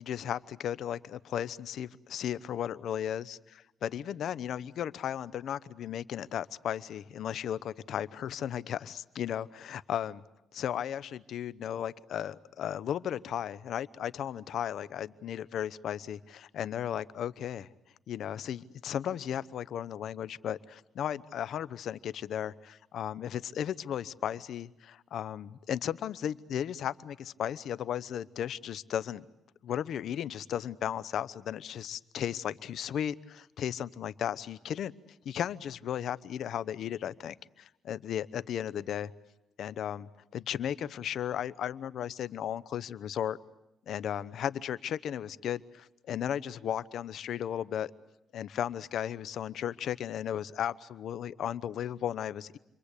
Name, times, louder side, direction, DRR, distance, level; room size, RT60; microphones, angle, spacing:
voice 1, 0.0-10.2 10.5-17.7 18.1-29.2 29.6-34.9 35.2-39.1 39.6-43.4 43.9-47.9 48.3-52.6, left 10 dB, 70° left, 17 dB, 0.9 m, -35 dB
29.5 x 23.5 x 8.4 m, 0.91 s
cardioid pair, 90°, 0 cm